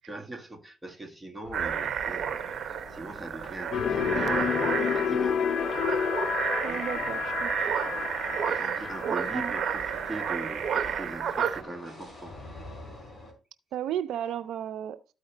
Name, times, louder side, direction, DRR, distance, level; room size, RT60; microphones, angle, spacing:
voice 1, 0.1-5.4 5.7-7.4 8.0-12.4, right 2 dB, 10° right, 1.5 m, -41 dB
sound 1, 1.4-13.3, left 1 dB, 15° left, 3.9 m, -47 dB
sound 2, 1.5-11.6, right 8 dB, 55° right, 1.0 m, -31 dB
sound 3, 3.7-10.7, left 7 dB, 55° left, 0.5 m, -30 dB
voice 2, 6.6-7.5 9.1-9.5 13.7-15.0, right 10 dB, 80° right, 0.4 m, -34 dB
13.0 x 4.8 x 3.2 m
cardioid pair, 90°, 0 cm